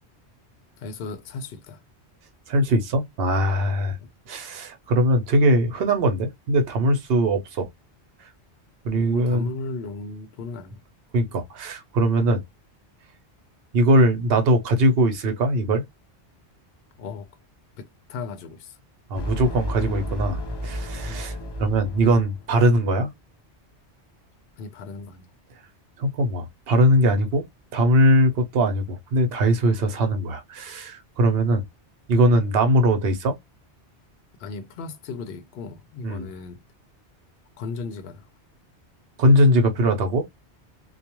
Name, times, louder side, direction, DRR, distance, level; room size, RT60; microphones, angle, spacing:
voice 1, 0.8-1.8 4.0-4.1 8.9-10.8 17.0-17.3 17.8-18.8 21.1-21.2 24.6-25.3 34.4-36.6 37.6-38.3, left 4 dB, 65° left, 0.8 m, -36 dB
voice 2, 2.5-4.0 4.3-7.7 8.8-9.5 11.1-12.4 13.7-15.8 19.1-23.1 26.0-27.5 27.7-31.6 32.1-33.3 36.0-36.3 39.2-40.2, right 1 dB, 65° right, 0.9 m, -21 dB
sound 1, 19.1-22.8, equal, 35° left, 0.4 m, -32 dB
2.3 x 2.2 x 2.9 m
omnidirectional pair, 1.1 m